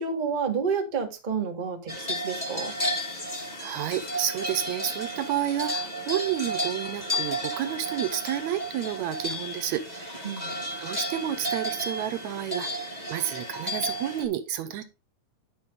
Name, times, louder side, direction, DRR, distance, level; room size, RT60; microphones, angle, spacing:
voice 1, 0.0-2.7 10.2-10.5, right 5 dB, 25° right, 3 dB, 1.1 m, -30 dB
sound 1, 1.9-14.2, equal, 25° left, 1.0 m, -33 dB
voice 2, 3.6-10.3 10.8-12.7 13.1-14.8, right 11 dB, 75° right, 8 dB, 2.0 m, -30 dB
10.5 x 6.2 x 3.6 m, 0.28 s
omnidirectional pair, 3.5 m